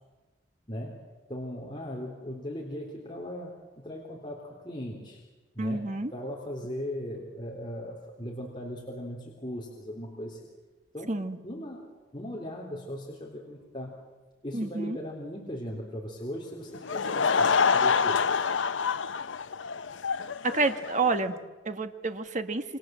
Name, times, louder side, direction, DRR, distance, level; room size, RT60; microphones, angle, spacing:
voice 1, 0.7-5.2 5.5-10.4 10.9-11.2 11.4-11.8 12.1-14.0 14.4-18.2, equal, 25° left, -2 dB, 3.6 m, -38 dB
voice 2, 5.6-6.1 11.1-11.4 14.5-15.0 20.4-21.3 21.6-22.6, right 3 dB, 40° right, 8 dB, 1.7 m, -29 dB
Laughter / Crowd, 16.7-21.3, left 5 dB, 85° left, 0.8 m, -26 dB
28.0 x 26.0 x 7.7 m, 1.2 s
head